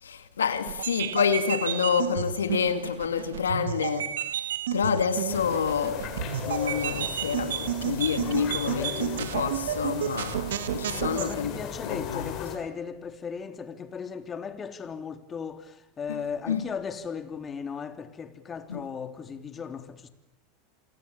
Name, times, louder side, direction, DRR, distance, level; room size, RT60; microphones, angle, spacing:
voice 1, 0.0-12.4 16.1-16.2 16.5-16.6 18.7-18.8, left 6 dB, 90° left, 2.1 m, -28 dB
sound 1, 0.7-11.3, right 11 dB, 80° right, 1.5 m, -32 dB
sound 2, 5.3-12.6, left 8 dB, 50° left, 6.4 m, -37 dB
voice 2, 11.0-20.1, left 6 dB, 30° left, 3.1 m, -37 dB
28.5 x 26.5 x 7.1 m
hypercardioid pair, 95°, 0 cm